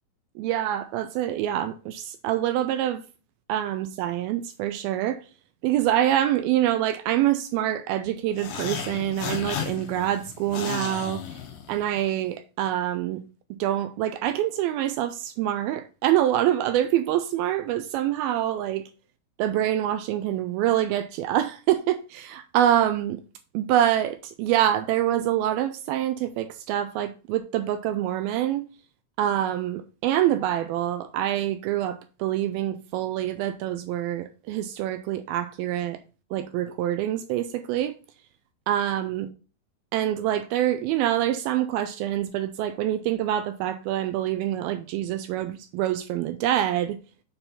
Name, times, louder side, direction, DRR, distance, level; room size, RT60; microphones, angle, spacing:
voice 1, 0.4-3.0 3.5-5.2 5.6-11.2 11.7-13.2 13.6-18.9 19.4-23.2 23.5-28.7 29.2-36.0 36.3-37.9 38.7-39.3 39.9-47.0, right 12 dB, 80° right, 2.2 m, -25 dB
sound 1, 8.3-12.1, left 8 dB, 65° left, 2.5 m, -34 dB
7.0 x 4.3 x 5.4 m
omnidirectional pair, 4.5 m